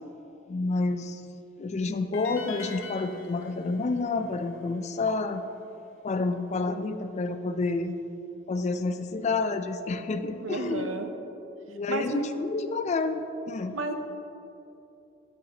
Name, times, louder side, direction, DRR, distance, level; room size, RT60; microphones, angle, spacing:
voice 1, 0.5-1.2 1.6-5.4 6.0-8.0 8.5-10.9 11.7-13.7, left 3 dB, 35° left, 9 dB, 0.3 m, -29 dB
sound 1, 2.1-5.3, left 4 dB, 80° left, 0.7 m, -45 dB
voice 2, 10.4-11.1 11.9-12.2 13.7-13.9, right 3 dB, 70° right, 6 dB, 0.7 m, -32 dB
9.3 x 8.3 x 2.9 m, 2.8 s
head